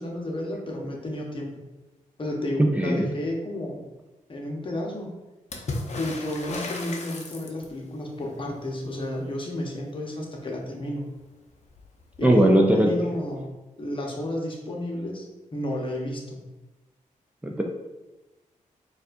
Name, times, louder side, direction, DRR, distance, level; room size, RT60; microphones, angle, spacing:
voice 1, 0.0-1.6 2.2-3.8 4.3-5.1 6.0-11.1 12.2-12.5 12.7-13.5 13.8-15.3 15.5-16.4, left 1 dB, 40° left, -1 dB, 0.8 m, -32 dB
voice 2, 2.6-3.1 12.2-12.9 17.4-17.6, right 1 dB, 10° right, 0 dB, 0.4 m, -19 dB
Water / Splash splatter, 5.5-7.9 11.2-11.3 11.5-12.3 13.4-13.5, left 2 dB, 55° left, 0.5 m, -35 dB
4.2 x 2.3 x 2.5 m, 1.1 s
cardioid pair, 60°, 14 cm